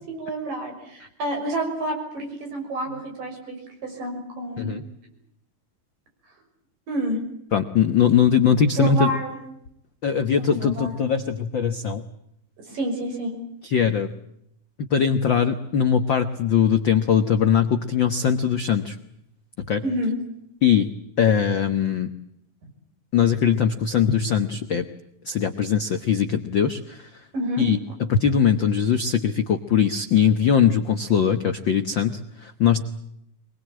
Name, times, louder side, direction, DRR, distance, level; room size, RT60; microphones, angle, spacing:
voice 1, 0.1-4.7 6.9-7.2 8.8-9.3 10.4-11.0 12.7-13.4 19.8-20.1 27.3-27.6, right 1 dB, 75° right, 3 dB, 7.8 m, -28 dB
voice 2, 7.5-9.1 10.0-12.0 13.6-14.1 14.9-19.0 19.6-19.8 20.6-20.9 21.2-22.1 23.1-24.9 25.2-27.2 27.6-32.8, left 7 dB, 70° left, 8 dB, 1.1 m, -21 dB
24.5 x 21.0 x 8.7 m, 0.78 s
omnidirectional pair, 3.9 m